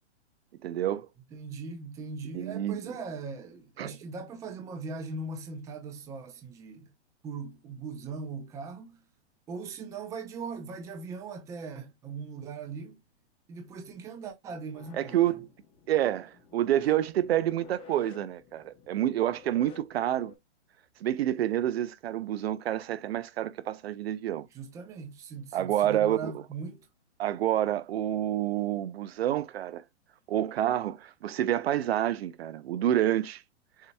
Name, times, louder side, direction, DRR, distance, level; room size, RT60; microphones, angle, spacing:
voice 1, 0.6-1.1 2.3-2.8 3.8-4.0 15.0-15.5 15.9-20.3 21.0-24.5 25.5-26.3 27.2-29.8 30.3-33.4, right 12 dB, 60° right, 0.5 m, -28 dB
voice 2, 1.3-6.9 7.2-9.0 9.5-13.0 13.5-15.2 24.5-26.8, right 4 dB, 10° right, 0.6 m, -40 dB
sound 1, 14.7-20.4, left 7 dB, 15° left, 0.9 m, -52 dB
7.2 x 2.7 x 2.2 m
hypercardioid pair, 150°, 35 cm